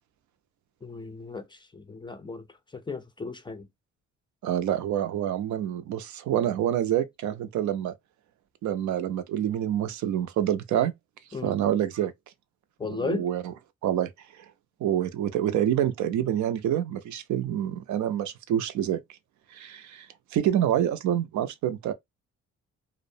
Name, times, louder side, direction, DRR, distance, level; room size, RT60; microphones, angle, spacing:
voice 1, 0.8-2.5 2.7-3.7 11.3-11.6 12.8-13.3, left 4 dB, 15° left, 0.4 m, -35 dB
voice 2, 4.4-7.9 8.6-10.9 11.4-12.1 12.9-13.4 13.8-14.1 14.4-14.5 14.8-19.0 19.5-20.1 20.3-21.9, right 10 dB, 70° right, 0.5 m, -27 dB
2.3 x 2.0 x 2.6 m
cardioid pair, 90°, 30 cm